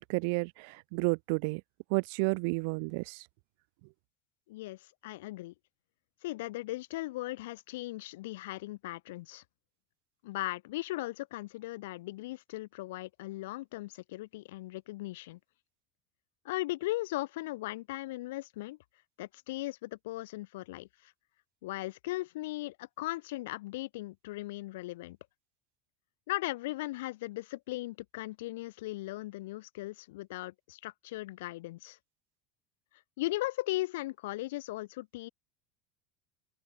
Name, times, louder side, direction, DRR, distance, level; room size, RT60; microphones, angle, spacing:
voice 1, 0.0-1.6 1.9-3.2, right 33 dB, 70° right, 0.6 m, -31 dB
voice 2, 4.5-5.5 6.2-9.4 10.2-15.4 16.4-18.8 19.2-21.1 21.6-25.2 26.3-32.0 33.2-35.3, left 18 dB, 90° left, 2.1 m, -38 dB
open air
supercardioid pair, 140°, 0 cm